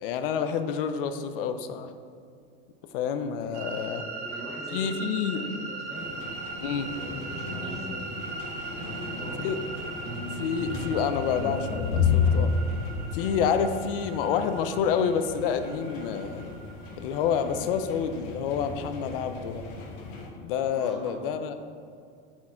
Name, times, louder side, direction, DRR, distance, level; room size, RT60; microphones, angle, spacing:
voice 1, 0.0-1.9 2.9-4.1 4.7-5.5 6.6-6.9 9.4-9.6 10.3-12.6 13.1-16.4 17.0-19.6 20.4-21.5, left 7 dB, 65° left, 9 dB, 0.5 m, -28 dB
voice 2, 3.4-6.3 6.8-8.1 8.7-9.4 13.1-13.3 17.5-17.6 20.7-21.4, equal, ahead, -3 dB, 0.3 m, -43 dB
sound 1, 3.5-17.9, right 4 dB, 40° right, 0.6 m, -40 dB
sound 2, 5.9-20.3, left 5 dB, 45° left, 0.9 m, -33 dB
sound 3, 6.7-11.9, right 1 dB, 75° right, 1.5 m, -39 dB
5.9 x 4.3 x 4.4 m, 2.3 s
supercardioid pair, 170°, 30 cm